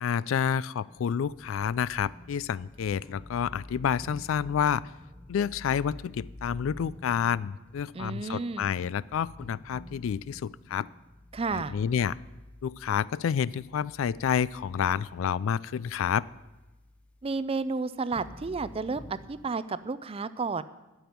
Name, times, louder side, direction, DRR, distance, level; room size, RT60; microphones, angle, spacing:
voice 1, 0.0-4.8 5.3-10.9 11.5-12.2 12.6-16.2, left 8 dB, 70° left, 20 dB, 0.3 m, -29 dB
sound 1, 0.9-17.5 18.0-19.5, left 1 dB, 5° left, 0.7 m, -49 dB
voice 2, 7.9-8.7 11.3-11.8 17.2-20.6, right 4 dB, 25° right, 15 dB, 0.4 m, -32 dB
10.0 x 7.0 x 9.2 m, 1.1 s
head